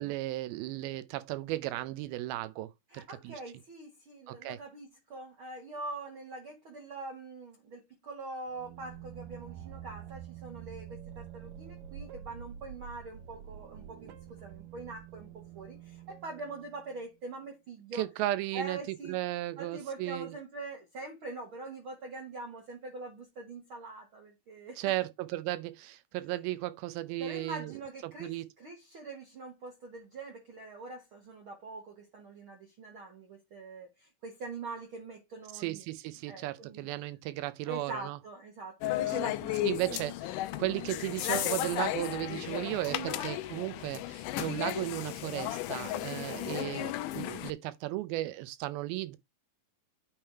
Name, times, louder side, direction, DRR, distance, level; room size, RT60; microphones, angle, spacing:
voice 1, 0.0-3.4 4.3-4.6 17.9-18.8 19.1-20.3 24.8-27.7 28.0-28.4 35.5-38.2 39.1-39.2 39.6-40.1 40.6-49.2, right 16 dB, 90° right, 2.6 m, -35 dB
voice 2, 2.9-18.1 18.5-19.2 19.6-24.9 27.2-35.8 36.3-36.9 37.7-40.0 42.9-43.2 45.9-46.5, right 3 dB, 55° right, 1.5 m, -44 dB
sound 1, 8.5-17.1, right 9 dB, 70° right, 1.6 m, -47 dB
sound 2, 38.8-47.5, left 15 dB, 85° left, 1.9 m, -34 dB
8.9 x 3.5 x 4.5 m
omnidirectional pair, 4.2 m